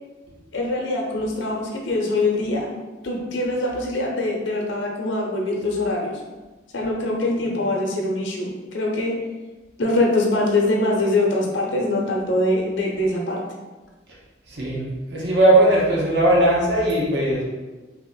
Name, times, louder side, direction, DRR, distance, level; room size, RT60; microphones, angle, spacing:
voice 1, 0.5-2.7 3.0-6.2 6.7-9.2 9.8-13.4, left 2 dB, 85° left, -1 dB, 0.7 m, -23 dB
voice 2, 14.5-17.4, right 1 dB, 65° right, -4 dB, 0.9 m, -18 dB
2.9 x 2.9 x 4.0 m, 1.2 s
head